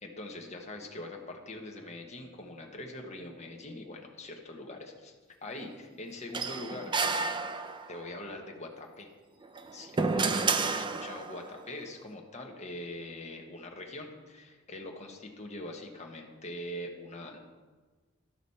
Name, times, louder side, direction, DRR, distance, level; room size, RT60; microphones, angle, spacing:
voice 1, 0.0-5.1 5.4-7.0 7.9-9.1 9.7-17.4, left 1 dB, 35° left, 1 dB, 1.1 m, -43 dB
sound 1, 6.3-8.1 9.4-11.5, right 4 dB, 25° right, 0.4 m, -30 dB
13.0 x 5.0 x 4.2 m, 1.4 s
head